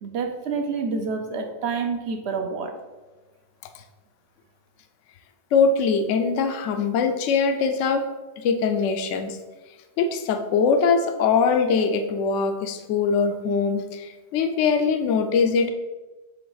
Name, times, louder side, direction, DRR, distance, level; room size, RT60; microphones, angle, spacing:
voice 1, 0.0-2.8, right 5 dB, 65° right, 5 dB, 1.0 m, -28 dB
voice 2, 5.5-8.0 8.4-9.4 10.0-15.7, left 5 dB, 75° left, 6 dB, 0.9 m, -22 dB
7.7 x 3.3 x 3.9 m, 1.2 s
omnidirectional pair, 1.3 m